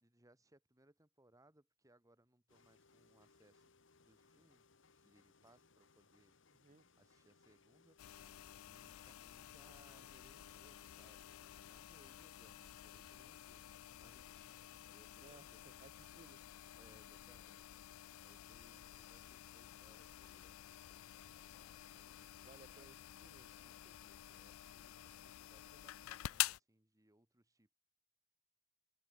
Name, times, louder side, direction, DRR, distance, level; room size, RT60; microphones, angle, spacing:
voice 1, 0.0-3.7 4.0-4.7 4.9-6.3 6.9-8.0 8.7-15.7 16.7-20.6 20.9-21.0 21.4-22.9 23.6-27.7, right 1 dB, 15° right, 1.8 m, -70 dB
sound 1, 2.5-11.7, left 4 dB, 60° left, 1.5 m, -70 dB
voice 2, 6.5-6.9 15.2-16.4 22.4-23.5, right 3 dB, 35° right, 0.6 m, -62 dB
sound 2, 8.0-26.6, left 14 dB, 85° left, 0.4 m, -49 dB
head